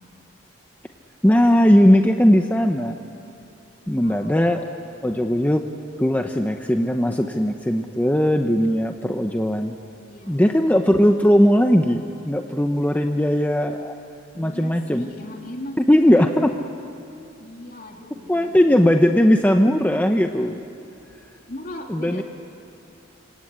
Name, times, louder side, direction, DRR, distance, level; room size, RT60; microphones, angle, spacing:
voice 1, 1.2-3.0 3.9-4.6 5.0-5.7 6.0-9.8 10.3-14.0 14.3-15.1 15.9-16.5 18.3-20.6 21.9-22.2, equal, 10° left, 4 dB, 0.8 m, -18 dB
voice 2, 4.0-4.4 10.1-10.4 14.3-16.5 17.4-18.9 21.5-22.2, left 1 dB, 45° left, 2 dB, 3.2 m, -38 dB
26.0 x 26.0 x 8.8 m, 2.7 s
head